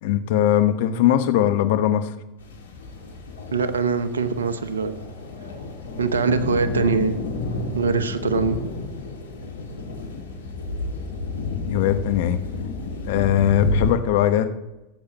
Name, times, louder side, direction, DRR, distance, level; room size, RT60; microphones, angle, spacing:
voice 1, 0.0-2.1 11.7-12.4 13.1-14.5, left 11 dB, 65° left, 9 dB, 1.0 m, -20 dB
sound 1, 2.4-13.9, left 2 dB, 85° left, 2.2 m, -30 dB
voice 2, 3.5-4.9 6.0-7.2 7.7-8.6, right 5 dB, 85° right, 11 dB, 1.0 m, -22 dB
17.5 x 8.5 x 3.0 m, 0.98 s
hypercardioid pair, 85°, 0 cm